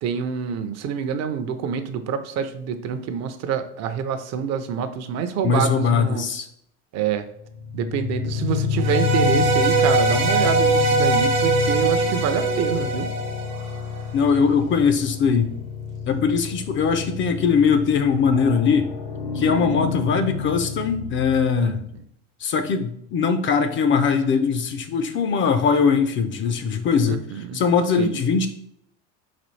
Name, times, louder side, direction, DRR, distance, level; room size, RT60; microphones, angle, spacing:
voice 1, 0.0-6.3 6.9-7.3 7.7-13.1 21.6-21.7 27.1-27.6 28.0-28.2, right 7 dB, 45° right, 10 dB, 0.5 m, -27 dB
voice 2, 5.4-6.5 14.1-15.5 16.1-18.9 19.3-21.9 22.4-27.2 27.5-28.5, left 6 dB, 35° left, 8 dB, 0.4 m, -21 dB
sound 1, 7.4-22.0, left 6 dB, 75° left, 1.2 m, -29 dB
sound 2, 8.8-14.0, right 4 dB, 80° right, 1.0 m, -22 dB
4.1 x 4.0 x 3.1 m, 0.70 s
supercardioid pair, 110°, 37 cm